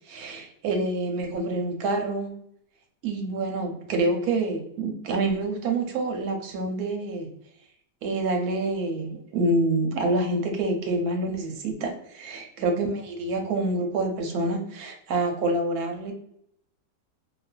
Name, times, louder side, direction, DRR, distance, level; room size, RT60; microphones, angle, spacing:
voice 1, 0.1-2.4 3.0-7.3 8.0-16.1, right 2 dB, 70° right, 3 dB, 1.0 m, -27 dB
2.5 x 2.4 x 2.2 m, 0.73 s
omnidirectional pair, 1.8 m